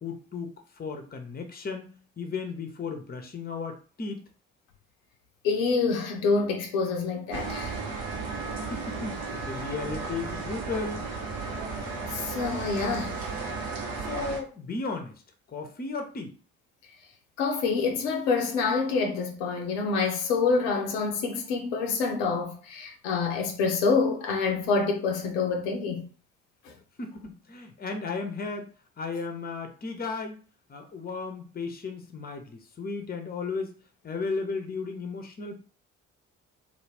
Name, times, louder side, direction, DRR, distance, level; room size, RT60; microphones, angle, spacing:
voice 1, 0.0-0.5 0.8-4.2 8.7-11.1 14.0-15.1 15.5-16.3 27.0-28.7 29.0-30.4 30.7-33.7 34.0-35.5, left 4 dB, 25° left, 0.7 m, -35 dB
voice 2, 5.4-7.8 12.1-13.2 17.4-26.0 26.7-26.8, left 4 dB, 80° left, 0.5 m, -27 dB
sound 1, 7.3-14.4, right 4 dB, 60° right, 0.8 m, -34 dB
2.3 x 2.1 x 3.2 m
hypercardioid pair, 40°, 38 cm